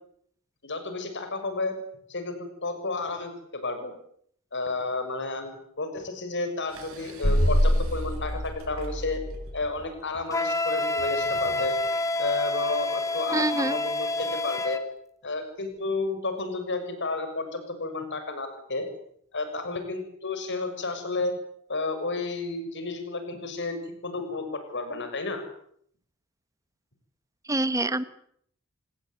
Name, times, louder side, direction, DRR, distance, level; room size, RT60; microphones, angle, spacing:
voice 1, 0.6-1.7 2.1-3.9 4.5-9.2 9.5-11.7 12.2-14.8 15.2-18.8 19.3-21.3 21.7-23.8 24.0-25.4, left 3 dB, 55° left, 8 dB, 6.7 m, -31 dB
sound 1, 6.7-12.1, right 2 dB, 65° right, 6.9 m, -48 dB
sound 2, 7.2-9.7, equal, 70° left, 2.9 m, -25 dB
Wind instrument woodwind instrument, 10.3-14.8, left 2 dB, 15° left, 2.0 m, -28 dB
voice 2, 13.3-13.8 27.5-28.0, right 2 dB, 15° right, 13 dB, 1.4 m, -25 dB
27.5 x 19.5 x 9.8 m, 0.67 s
head